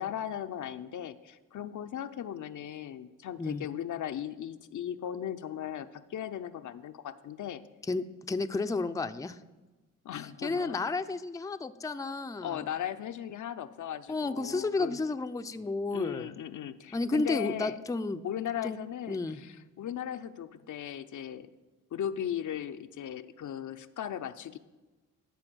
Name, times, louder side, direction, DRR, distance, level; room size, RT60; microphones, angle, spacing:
voice 1, 0.0-7.6 10.0-10.8 12.4-15.0 15.9-17.8 18.2-21.5 21.9-24.6, left 10 dB, 60° left, 10 dB, 0.6 m, -37 dB
voice 2, 7.9-9.4 10.4-12.6 14.1-16.3 16.9-18.2 18.6-18.8 19.1-19.4, left 3 dB, 10° left, 9 dB, 0.5 m, -32 dB
13.0 x 4.5 x 6.1 m, 1.2 s
supercardioid pair, 50°, 34 cm